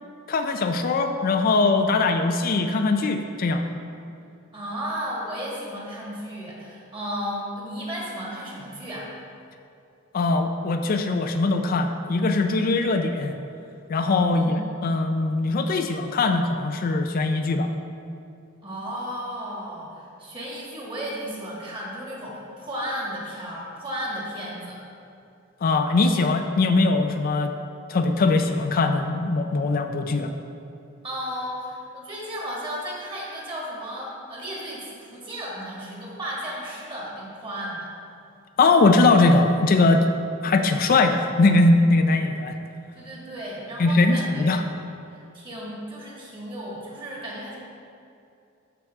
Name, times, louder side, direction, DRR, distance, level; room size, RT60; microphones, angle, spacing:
voice 1, 0.3-3.6 10.1-13.4 13.9-17.7 25.6-27.5 27.9-30.3 38.6-40.1 40.4-42.6 43.8-44.6, left 3 dB, 45° left, 6 dB, 0.4 m, -21 dB
voice 2, 4.5-9.1 14.3-14.8 18.6-24.8 31.0-37.9 42.9-44.5 45.1-47.6, equal, 25° right, -5 dB, 1.9 m, -34 dB
12.5 x 4.7 x 3.6 m, 2.6 s
head